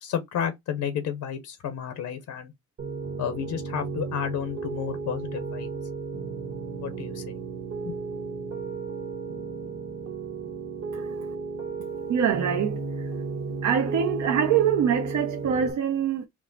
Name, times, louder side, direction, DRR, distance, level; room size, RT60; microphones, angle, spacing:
voice 1, 0.0-2.5 3.2-5.7 6.8-7.4 7.9-8.0, left 8 dB, 75° left, 0.8 m, -31 dB
Piano, 2.8-15.7, right 4 dB, 45° right, 1.2 m, -34 dB
voice 2, 12.1-13.1 13.6-16.3, right 8 dB, 70° right, 0.7 m, -24 dB
4.6 x 2.1 x 3.9 m
cardioid pair, 90°, 30 cm